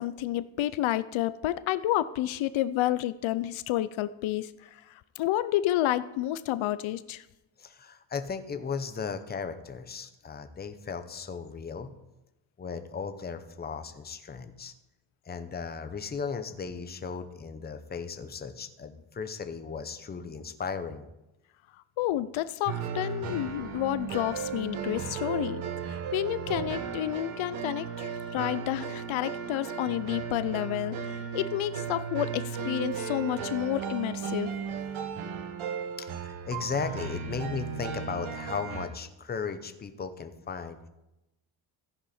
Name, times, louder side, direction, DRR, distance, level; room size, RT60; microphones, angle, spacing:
voice 1, 0.0-4.8 5.2-7.2 22.0-34.5, left 13 dB, 75° left, 15 dB, 0.6 m, -30 dB
voice 2, 7.6-11.9 12.6-14.7 15.3-21.0 36.0-40.9, left 5 dB, 20° left, 9 dB, 0.8 m, -36 dB
sound 1, 22.7-38.9, right 6 dB, 75° right, 1.6 m, -35 dB
14.5 x 10.5 x 4.3 m, 0.93 s
cardioid pair, 155°, 48 cm